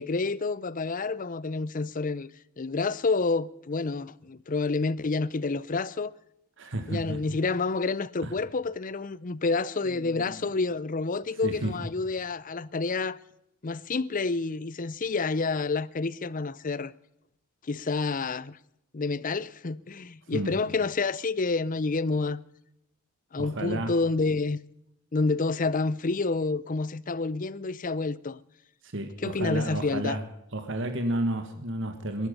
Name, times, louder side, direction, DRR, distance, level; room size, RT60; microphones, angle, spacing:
voice 1, 0.0-2.3 2.6-6.1 6.9-13.2 13.6-16.9 17.6-18.6 18.9-22.4 23.3-24.6 25.1-28.4 29.2-30.2, left 3 dB, 35° left, 0.6 m, -29 dB
voice 2, 6.6-7.2 8.2-8.3 9.9-10.4 11.4-11.7 20.3-20.5 23.4-23.9 28.8-30.2 30.5-32.3, right 1 dB, 60° right, 1.7 m, -31 dB
22.0 x 12.0 x 5.4 m
head